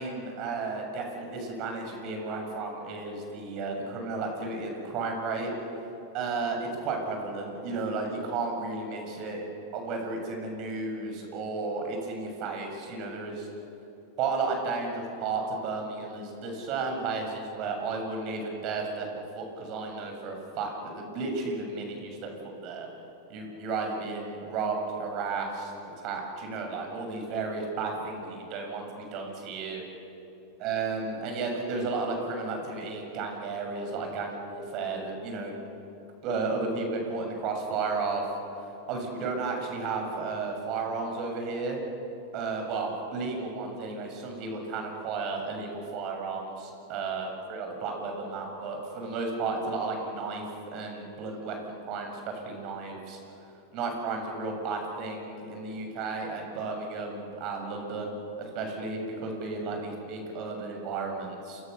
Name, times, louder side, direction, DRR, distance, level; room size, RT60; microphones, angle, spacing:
voice 1, 0.0-5.5 6.1-9.4 9.7-13.5 14.2-22.3 22.6-22.9 23.3-25.7 26.0-29.8 30.6-35.5 36.2-38.2 38.9-41.8 42.3-53.2 53.7-58.1 58.4-61.6, right 4 dB, 45° right, 3 dB, 7.2 m, -33 dB
28.5 x 25.5 x 7.0 m, 2.9 s
hypercardioid pair, 100°, 0 cm